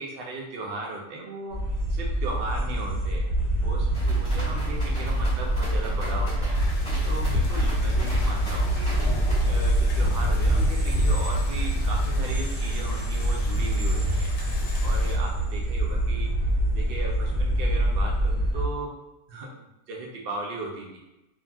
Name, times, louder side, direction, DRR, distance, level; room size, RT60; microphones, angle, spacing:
voice 1, 0.0-1.6 1.9-3.3 3.6-6.6 7.0-9.0 9.5-14.3 14.8-16.3 16.7-18.9 19.3-21.0, right 2 dB, 80° right, -1 dB, 0.5 m, -36 dB
sound 1, 1.5-18.7, right 1 dB, 55° right, 0.9 m, -25 dB
sound 2, 3.9-9.3, right 3 dB, 20° left, 1.2 m, -37 dB
sound 3, 6.5-15.1, left 2 dB, 80° left, 1.3 m, -32 dB
3.0 x 2.5 x 2.2 m, 0.96 s
omnidirectional pair, 1.7 m